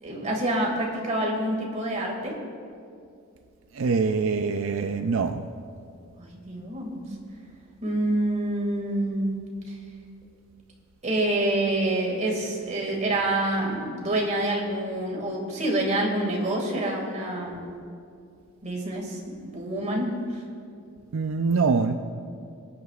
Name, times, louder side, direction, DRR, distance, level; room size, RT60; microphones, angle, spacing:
voice 1, 0.0-2.4 6.2-7.1 7.8-9.5 11.0-17.6 18.6-20.1, right 1 dB, 35° right, -1 dB, 2.2 m, -27 dB
voice 2, 3.8-5.4 21.1-21.9, right 4 dB, 75° right, 7 dB, 0.5 m, -24 dB
26.0 x 9.5 x 2.4 m, 2.4 s
head